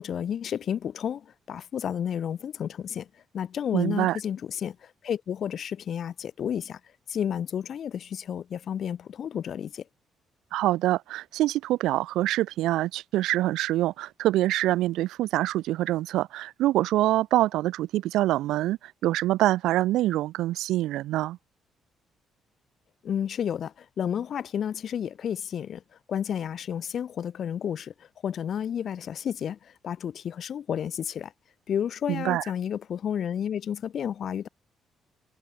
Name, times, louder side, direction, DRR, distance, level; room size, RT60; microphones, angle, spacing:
voice 1, 0.0-3.1 3.3-6.8 7.1-9.8 23.0-25.8 26.1-31.3 31.7-34.5, left 8 dB, 60° left, 6.3 m, -31 dB
voice 2, 3.7-4.2 10.5-21.4 32.1-32.4, right 15 dB, 90° right, 2.4 m, -25 dB
cardioid pair, 90°, 0 cm